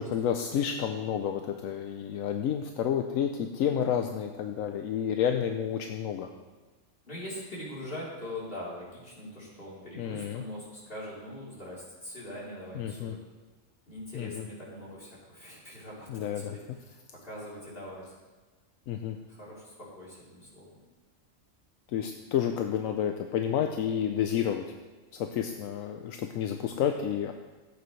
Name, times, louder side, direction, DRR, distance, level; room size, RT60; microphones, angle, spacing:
voice 1, 0.0-6.3 10.0-10.4 12.8-13.2 14.1-14.5 16.1-16.6 18.9-19.2 21.9-24.6 25.1-27.3, left 9 dB, 80° left, 5 dB, 1.0 m, -30 dB
voice 2, 3.6-4.1 7.1-13.2 13.9-18.0 19.3-20.8, left 1 dB, 45° left, -7 dB, 3.7 m, -42 dB
15.0 x 8.3 x 3.2 m, 1.3 s
omnidirectional pair, 1.4 m